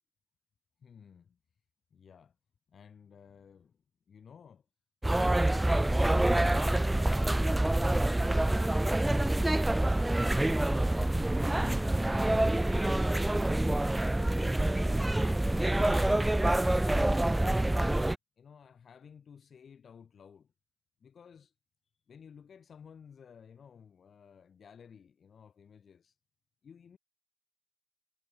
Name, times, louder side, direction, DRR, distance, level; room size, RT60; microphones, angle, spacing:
voice 1, 0.8-1.4 1.9-2.4 2.7-4.7 18.4-20.5 21.0-21.5 22.1-26.2 26.6-27.0, left 7 dB, 50° left, 7.7 m, -55 dB
sound 1, 5.0-18.2, right 1 dB, 10° right, 0.6 m, -26 dB
hypercardioid pair, 50°, 0 cm